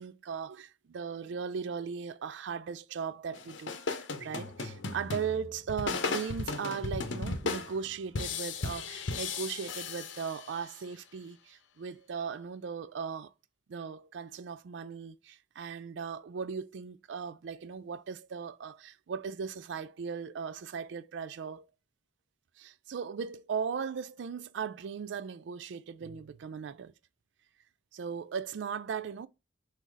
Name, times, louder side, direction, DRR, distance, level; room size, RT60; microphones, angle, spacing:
voice 1, 0.0-3.8 4.2-13.3 13.7-21.7 22.6-26.9 27.9-29.3, right 6 dB, 70° right, 0.4 m, -38 dB
sound 1, 3.3-10.8, left 4 dB, 85° left, 0.7 m, -36 dB
3.8 x 2.7 x 4.6 m
head